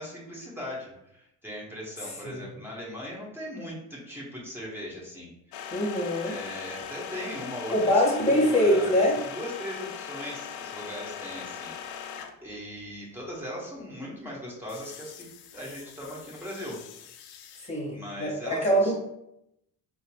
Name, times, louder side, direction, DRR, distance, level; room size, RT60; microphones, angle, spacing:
voice 1, 0.0-5.3 6.2-7.9 8.2-16.8 17.9-18.9, equal, 5° right, -5 dB, 1.3 m, -39 dB
sound 1, 5.5-12.5 14.7-17.7, left 8 dB, 70° left, 0.5 m, -40 dB
voice 2, 5.7-6.3 7.7-9.2 17.6-18.9, equal, 15° left, -2 dB, 1.4 m, -24 dB
4.0 x 2.0 x 3.0 m, 0.81 s
supercardioid pair, 75°, 39 cm